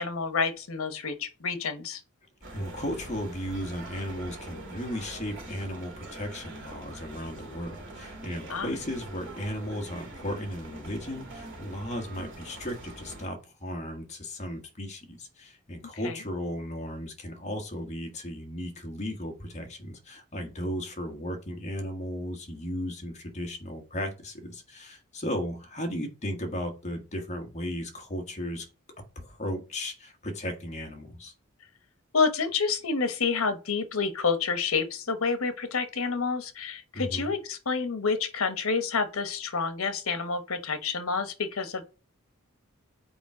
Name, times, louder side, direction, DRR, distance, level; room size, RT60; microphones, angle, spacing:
voice 1, 0.0-2.0 8.5-8.7 16.0-16.2 32.1-41.8, left 5 dB, 80° left, 1.1 m, -28 dB
sound 1, 2.4-13.2, right 2 dB, 60° right, 2.7 m, -44 dB
voice 2, 2.5-28.6 29.1-31.3 36.9-37.3, equal, 35° left, 1.5 m, -35 dB
7.0 x 4.7 x 4.8 m
head